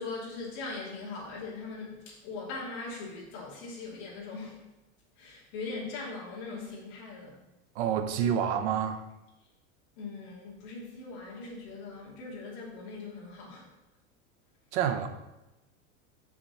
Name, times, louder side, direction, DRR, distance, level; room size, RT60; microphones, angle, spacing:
voice 1, 0.0-4.6 5.2-7.3 10.0-13.7, left 3 dB, 50° left, -5 dB, 2.5 m, -40 dB
voice 2, 7.7-9.0 14.7-15.1, right 8 dB, 70° right, 8 dB, 0.8 m, -28 dB
6.0 x 5.9 x 4.2 m, 0.97 s
supercardioid pair, 170°, 35 cm